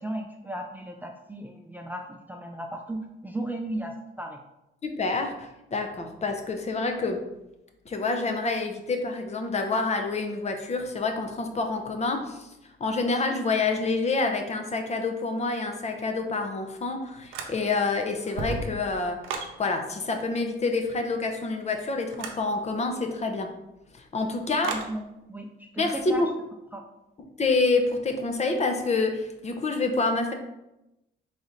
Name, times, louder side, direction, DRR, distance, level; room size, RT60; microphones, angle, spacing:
voice 1, 0.0-4.4 24.9-25.0 25.3-26.2 26.7-26.8, right 1 dB, 10° right, 2 dB, 0.4 m, -35 dB
voice 2, 4.8-7.2 7.9-12.5 12.8-19.2 19.6-23.5 23.9-24.7 25.8-26.3 27.4-30.3, left 3 dB, 35° left, 5 dB, 0.7 m, -27 dB
sound 1, 17.3-17.9 18.2-19.6 22.1-22.4 24.6-24.9, right 4 dB, 90° right, 0.6 m, -34 dB
4.0 x 3.0 x 3.8 m, 0.92 s
cardioid pair, 90°, 20 cm